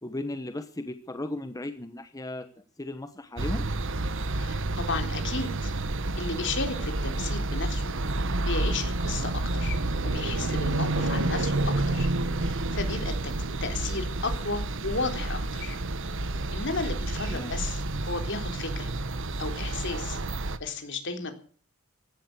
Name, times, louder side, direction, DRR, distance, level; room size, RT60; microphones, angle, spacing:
voice 1, 0.0-3.6 10.9-11.2 17.3-17.5, left 1 dB, 15° left, 8 dB, 1.1 m, -36 dB
sound 1, 3.4-20.6, right 2 dB, 60° right, 1.2 m, -29 dB
voice 2, 4.4-5.7 6.2-7.9 8.5-9.8 10.0-12.1 12.4-13.1 13.6-15.8 16.5-18.9 19.4-20.2 20.6-21.3, left 3 dB, 60° left, 6 dB, 3.7 m, -34 dB
16.0 x 12.0 x 6.8 m, 0.44 s
head